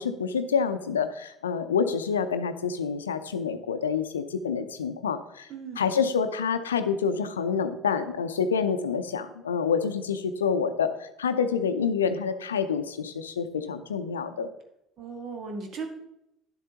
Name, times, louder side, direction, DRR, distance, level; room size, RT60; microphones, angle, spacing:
voice 1, 0.0-5.5 5.8-14.5, left 6 dB, 85° left, 10 dB, 0.5 m, -27 dB
voice 2, 5.5-5.9 15.0-15.9, right 4 dB, 50° right, 4 dB, 1.7 m, -37 dB
9.8 x 7.5 x 2.9 m, 0.82 s
figure-of-eight pair, 60°, 0 cm